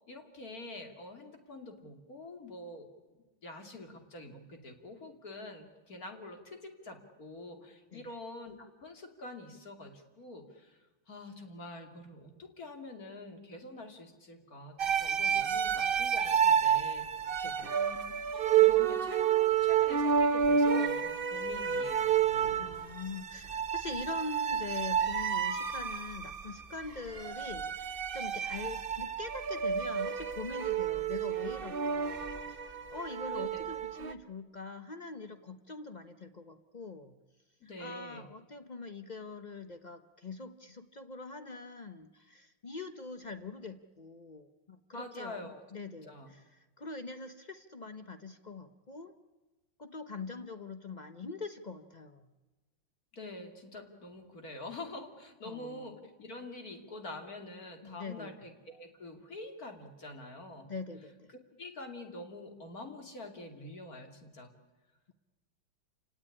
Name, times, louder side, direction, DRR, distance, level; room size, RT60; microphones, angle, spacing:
voice 1, 0.1-2.9 3.4-18.2 18.6-22.2 33.3-33.6 37.6-38.3 44.9-45.6 46.0-46.3 53.1-60.7 61.6-64.5, left 2 dB, 45° left, 5 dB, 3.2 m, -46 dB
sound 1, 14.8-34.1, right 8 dB, 45° right, 0.7 m, -30 dB
voice 2, 17.4-17.7 22.6-37.1 37.6-45.4 45.7-49.1 49.8-52.3 55.4-55.9 57.8-58.3 60.7-61.3, left 3 dB, 80° left, 9 dB, 0.4 m, -43 dB
28.5 x 17.5 x 9.9 m, 1.2 s
omnidirectional pair, 2.2 m